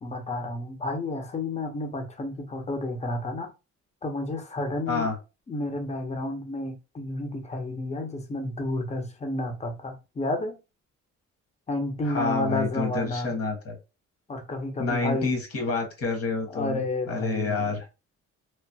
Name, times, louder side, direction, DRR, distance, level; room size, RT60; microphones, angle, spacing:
voice 1, 0.0-3.5 4.0-5.1 5.5-10.6 11.7-13.4 14.3-15.3 16.5-17.7, left 2 dB, 20° left, 0.7 m, -31 dB
voice 2, 12.1-13.8 14.8-16.8 17.1-17.9, left 4 dB, 50° left, 1.4 m, -28 dB
3.1 x 2.1 x 2.7 m
cardioid pair, 90°, 30 cm